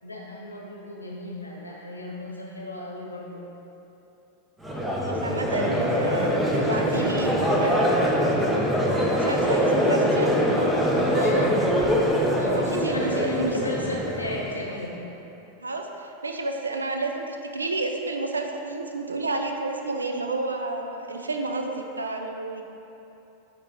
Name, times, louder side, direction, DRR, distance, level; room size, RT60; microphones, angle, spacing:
voice 1, 0.0-3.4 11.1-11.6 12.3-15.0, left 1 dB, 80° left, -2 dB, 0.8 m, -34 dB
Crowd, 4.6-14.8, equal, 5° right, 0.7 m, -23 dB
voice 2, 5.0-7.9 9.1-10.3 11.4-11.5 12.5-13.5 15.6-22.6, right 3 dB, 75° right, 3 dB, 0.4 m, -30 dB
6.6 x 3.0 x 5.1 m, 3.0 s
figure-of-eight pair, 90°, 0 cm